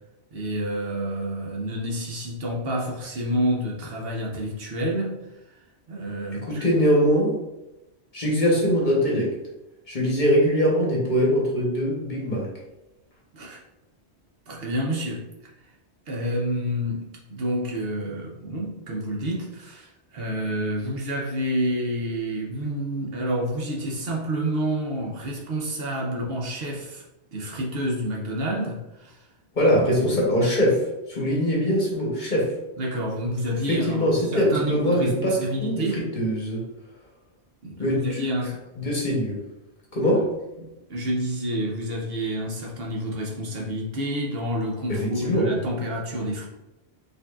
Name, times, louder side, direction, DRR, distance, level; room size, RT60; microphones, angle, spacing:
voice 1, 0.3-5.2 5.9-6.7 13.3-13.6 14.5-15.2 16.1-27.0 27.3-29.2 29.8-30.0 32.8-36.0 37.6-38.6 40.6-46.4, equal, 65° right, -2 dB, 0.9 m, -29 dB
voice 2, 6.3-7.4 8.1-9.3 9.9-12.5 29.5-32.5 33.7-36.6 37.8-38.2 38.7-39.4 39.9-40.3 44.9-45.5, equal, 45° left, -3 dB, 1.1 m, -22 dB
5.1 x 2.7 x 2.3 m, 0.97 s
omnidirectional pair, 1.1 m